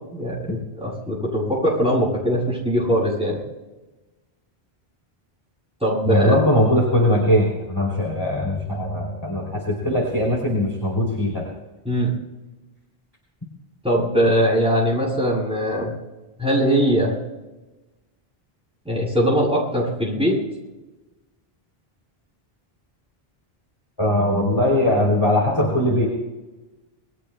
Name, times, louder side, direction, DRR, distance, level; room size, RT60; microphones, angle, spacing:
voice 1, 0.1-3.4 5.8-6.5 11.8-12.2 13.8-15.9 16.4-17.2 18.9-20.4, equal, 5° right, -6 dB, 7.5 m, -21 dB
voice 2, 6.0-11.5 24.0-26.1, left 1 dB, 25° left, -3 dB, 3.2 m, -20 dB
27.5 x 21.5 x 2.2 m, 1.1 s
omnidirectional pair, 1.0 m